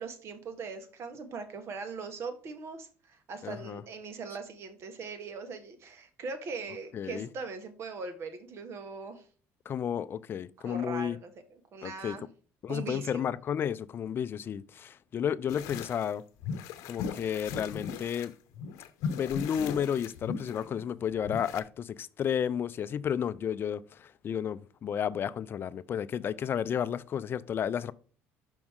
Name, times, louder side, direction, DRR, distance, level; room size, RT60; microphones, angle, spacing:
voice 1, 0.0-9.3 10.6-12.2 12.7-13.3, right 4 dB, 55° right, 1.4 m, -40 dB
voice 2, 3.4-3.8 6.9-7.3 9.7-11.2 11.8-12.2 12.6-16.2 16.9-18.3 19.1-27.9, left 8 dB, 45° left, 0.4 m, -32 dB
sound 1, 15.5-16.1 16.4-18.3 18.5-21.6, left 6 dB, 80° left, 0.7 m, -38 dB
5.9 x 5.3 x 3.6 m
cardioid pair, 100°, 5 cm